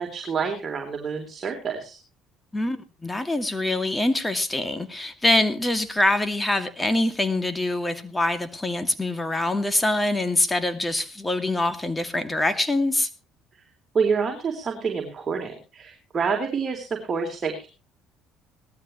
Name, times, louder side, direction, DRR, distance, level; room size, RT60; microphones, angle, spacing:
voice 1, 0.0-2.0 13.9-17.7, right 5 dB, 35° right, 3.7 m, -27 dB
voice 2, 2.5-13.1, left 2 dB, 15° left, 2.4 m, -24 dB
18.5 x 13.0 x 3.1 m
supercardioid pair, 80°, 0 cm